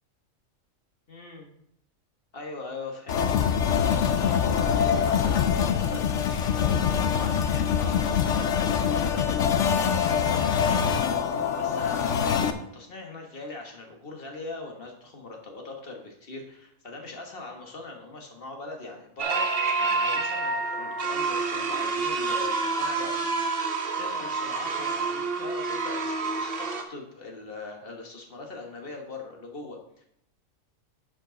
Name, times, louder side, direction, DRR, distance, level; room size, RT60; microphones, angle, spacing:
voice 1, 1.1-1.5 2.3-3.4 4.2-9.3 9.6-19.4 19.8-30.0, left 3 dB, 45° left, 2 dB, 1.6 m, -41 dB
sound 1, 3.1-12.5, left 7 dB, 70° left, 1.0 m, -24 dB
sound 2, 19.2-26.8, right 4 dB, 50° right, 1.1 m, -28 dB
10.5 x 5.3 x 3.9 m, 0.75 s
omnidirectional pair, 1.4 m